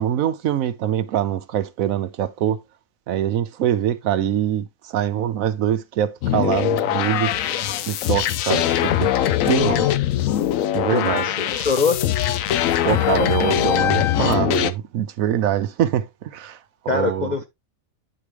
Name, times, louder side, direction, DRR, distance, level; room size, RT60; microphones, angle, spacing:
voice 1, 0.0-2.6 3.1-7.3 7.9-9.9 10.7-11.3 12.8-16.6 16.9-17.3, right 10 dB, 75° right, 1.0 m, -24 dB
sound 1, 6.2-14.7, left 11 dB, 70° left, 1.0 m, -21 dB
sound 2, 7.3-12.0 12.3-14.1, left 9 dB, 90° left, 1.5 m, -41 dB
voice 2, 10.9-12.0 16.9-17.4, left 4 dB, 45° left, 0.6 m, -23 dB
9.7 x 4.9 x 3.0 m
omnidirectional pair, 1.5 m